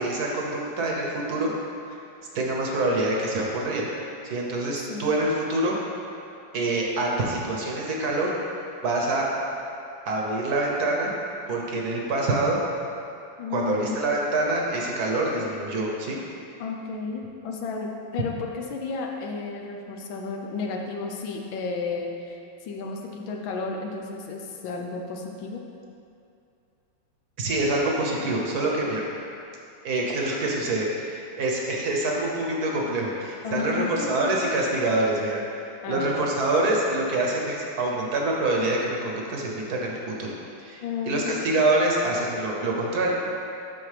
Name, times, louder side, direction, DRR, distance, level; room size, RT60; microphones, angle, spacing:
voice 1, 0.0-1.5 1.9-2.0 2.3-3.9 4.3-5.8 6.5-8.3 8.8-9.3 10.0-11.1 11.5-12.6 13.5-16.2 27.4-29.0 29.8-43.1, right 2 dB, 60° right, -2 dB, 1.2 m, -26 dB
voice 2, 13.4-14.0 16.6-25.6 33.4-34.4 35.8-36.3 40.8-41.4, left 4 dB, 90° left, 1 dB, 1.5 m, -32 dB
12.0 x 4.2 x 3.3 m, 2.6 s
omnidirectional pair, 2.1 m